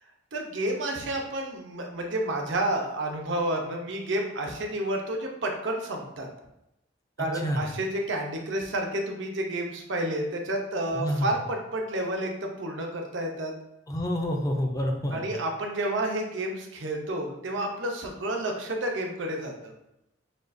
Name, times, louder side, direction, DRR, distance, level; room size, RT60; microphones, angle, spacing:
voice 1, 0.3-6.3 7.2-13.5 15.1-19.7, right 1 dB, 70° right, 1 dB, 0.7 m, -30 dB
voice 2, 7.2-7.6 10.9-11.3 13.9-15.3, equal, 20° left, 1 dB, 0.5 m, -28 dB
6.4 x 2.4 x 2.6 m, 0.87 s
head